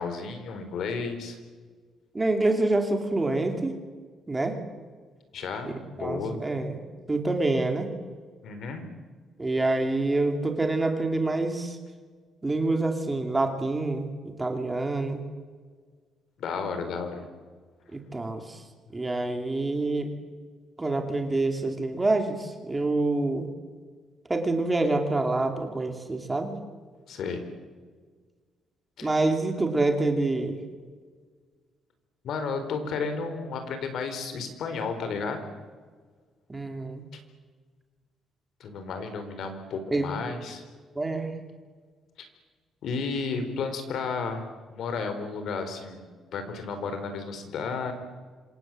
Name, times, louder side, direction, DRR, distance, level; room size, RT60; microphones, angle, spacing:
voice 1, 0.0-1.4 5.3-6.4 8.4-8.8 16.4-17.3 27.1-27.4 29.0-29.1 32.2-35.5 38.6-40.6 42.2-42.3 42.8-44.4 44.7-47.9, left 4 dB, 60° left, 8 dB, 4.3 m, -32 dB
voice 2, 2.1-3.7 4.3-4.6 5.6-6.8 7.1-7.9 9.4-11.8 12.4-15.2 17.9-18.6 18.9-20.1 20.8-23.5 24.3-26.5 29.0-30.6 36.5-37.0 39.9-40.1 41.0-41.3, right 2 dB, 15° right, 5 dB, 2.6 m, -27 dB
27.0 x 25.5 x 7.6 m, 1.5 s
cardioid pair, 170°, 0 cm